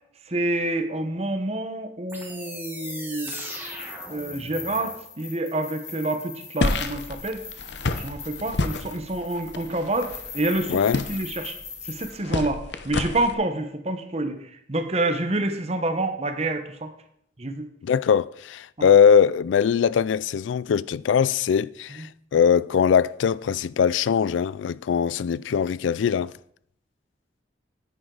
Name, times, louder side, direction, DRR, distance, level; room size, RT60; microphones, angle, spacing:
voice 1, 0.3-3.3 4.1-7.4 8.0-10.8 11.1-11.6 11.8-14.4 14.7-16.9 17.4-17.7 18.8-18.9 22.0-22.1, right 2 dB, 35° right, 1.0 m, -28 dB
sound 1, 2.1-5.0, right 2 dB, 10° right, 1.7 m, -39 dB
sound 2, 2.3-12.1, left 6 dB, 35° left, 2.2 m, -40 dB
sound 3, 6.6-13.3, left 2 dB, 70° left, 0.8 m, -30 dB
voice 2, 10.7-11.0 17.8-26.3, left 7 dB, 85° left, 0.3 m, -21 dB
9.6 x 9.6 x 3.9 m
head